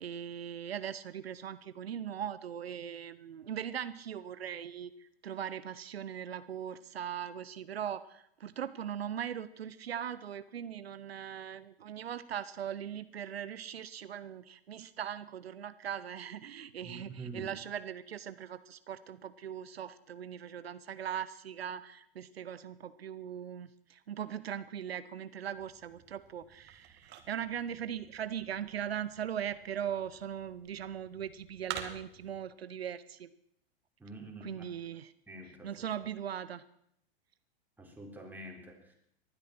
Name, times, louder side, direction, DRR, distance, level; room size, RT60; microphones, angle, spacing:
voice 1, 0.0-33.3 34.4-35.1 35.6-36.6, right 9 dB, 85° right, 14 dB, 0.8 m, -40 dB
voice 2, 16.8-17.5 34.0-34.7 35.3-35.9 37.8-38.9, right 2 dB, 5° right, 0 dB, 4.1 m, -46 dB
Picking up and Putting Down Object, 25.5-32.4, right 9 dB, 35° right, 2.2 m, -49 dB
19.5 x 12.5 x 6.0 m, 0.73 s
hypercardioid pair, 110°, 30 cm